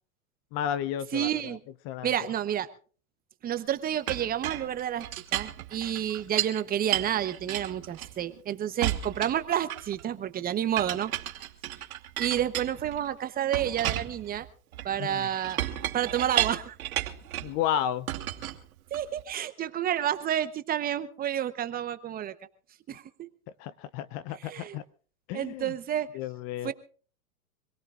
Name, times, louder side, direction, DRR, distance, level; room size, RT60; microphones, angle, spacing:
voice 1, 0.5-1.6 1.9-2.1 15.0-15.3 17.4-18.1 23.6-24.8 25.3-25.7 26.1-26.7, left 10 dB, 35° left, 0.6 m, -32 dB
voice 2, 1.1-1.6 2.0-2.7 3.4-11.1 12.2-14.5 14.8-15.6 15.9-16.8 18.9-22.3 22.9-23.3 24.4-24.8 25.3-26.1 26.6-26.7, right 10 dB, 20° right, 0.9 m, -30 dB
Chink clink, 4.1-6.6 6.9-8.4 8.8-10.0 10.8-13.1 13.5-17.6 18.1-19.2, right 12 dB, 75° right, 2.5 m, -33 dB
25.5 x 17.5 x 2.5 m
hypercardioid pair, 135°, 43 cm